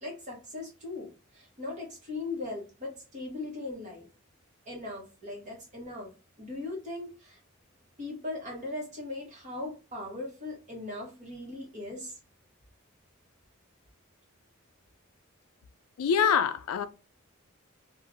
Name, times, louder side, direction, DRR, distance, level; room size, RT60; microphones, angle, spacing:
voice 1, 0.0-4.1 4.7-6.1 6.4-7.4 8.0-12.2, left 2 dB, 35° right, 1.2 m, -39 dB
voice 2, 16.0-16.9, left 7 dB, 85° left, 0.3 m, -25 dB
2.7 x 2.4 x 2.6 m
head